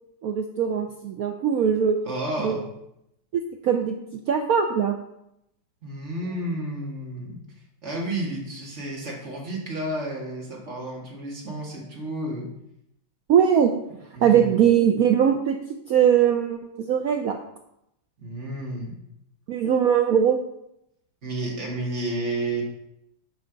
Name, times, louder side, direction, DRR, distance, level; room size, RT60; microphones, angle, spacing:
voice 1, 0.2-2.0 2.4-2.6 3.3-4.0 4.3-5.0 13.3-13.7 14.2-15.6 15.9-17.4 19.5-20.4, right 8 dB, 75° right, 4 dB, 0.8 m, -21 dB
voice 2, 2.0-2.6 5.8-7.4 7.8-12.5 14.1-14.6 18.2-19.0 21.2-22.6, right 1 dB, 40° right, -2 dB, 1.8 m, -31 dB
9.3 x 5.3 x 3.9 m, 0.80 s
omnidirectional pair, 2.1 m